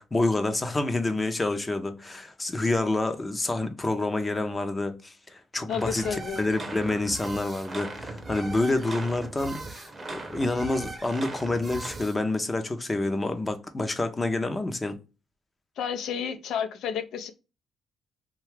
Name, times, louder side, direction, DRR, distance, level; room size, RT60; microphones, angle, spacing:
voice 1, 0.0-15.0, left 2 dB, 20° left, 0.6 m, -28 dB
voice 2, 5.7-6.5 15.8-17.3, left 7 dB, 75° left, 0.5 m, -31 dB
sound 1, 5.7-12.2, right 2 dB, 25° right, 0.7 m, -38 dB
2.8 x 2.3 x 3.1 m
cardioid pair, 90°, 0 cm